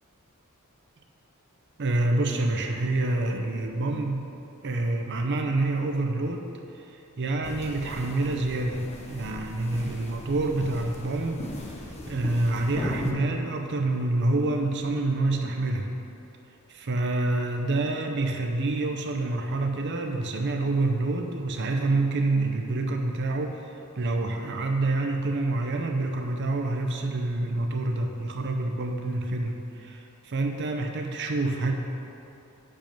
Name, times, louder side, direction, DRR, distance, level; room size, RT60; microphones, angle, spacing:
voice 1, 1.8-4.3 4.6-6.5 6.7-11.4 12.0-15.9 16.7-31.7, right 2 dB, 50° right, 3 dB, 0.6 m, -27 dB
sound 1, 7.4-13.1, left 1 dB, 30° left, 0.8 m, -38 dB
8.8 x 5.4 x 5.2 m, 2.9 s
head